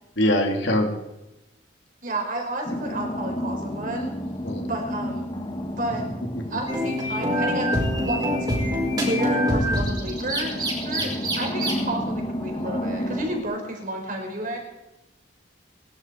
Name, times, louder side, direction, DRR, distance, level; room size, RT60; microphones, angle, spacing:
voice 1, 0.2-0.9 4.4-4.7 10.9-11.2, left 1 dB, 70° left, 3 dB, 3.0 m, -23 dB
voice 2, 2.0-4.1 4.6-5.3 5.7-6.0 6.5-7.7 8.0-14.6, right 1 dB, 45° right, 2 dB, 4.3 m, -31 dB
sound 1, 2.6-13.4, left 1 dB, 25° left, 1.6 m, -31 dB
sound 2, 6.7-11.7, equal, 20° right, 5.0 m, -25 dB
24.0 x 12.0 x 4.7 m, 0.96 s
head